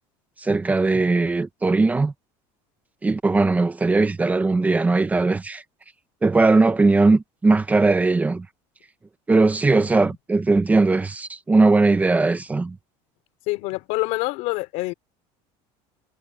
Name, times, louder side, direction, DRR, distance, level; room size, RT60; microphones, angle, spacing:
voice 1, 0.4-2.1 3.0-5.6 6.2-8.4 9.3-12.7, right 3 dB, 10° right, 1.1 m, -19 dB
voice 2, 9.7-10.1 13.5-14.9, left 22 dB, 70° left, 3.6 m, -27 dB
cardioid pair, 145°, 13 cm